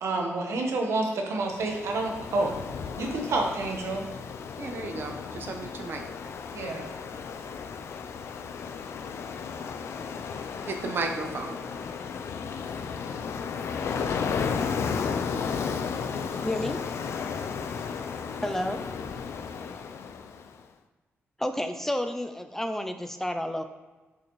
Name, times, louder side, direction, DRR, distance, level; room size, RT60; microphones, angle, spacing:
voice 1, 0.0-2.6 3.0-4.0 6.5-6.9, right 2 dB, 80° right, 2 dB, 1.1 m, -29 dB
Ocean, 1.4-20.5, left 6 dB, 75° left, 0.4 m, -34 dB
voice 2, 4.6-6.1 10.7-11.6, right 3 dB, 50° right, 5 dB, 0.7 m, -34 dB
voice 3, 16.4-16.8 18.4-18.8 21.4-23.6, left 1 dB, 10° left, 7 dB, 0.3 m, -30 dB
6.5 x 5.7 x 3.1 m, 1.2 s
wide cardioid pair, 160°, 5 cm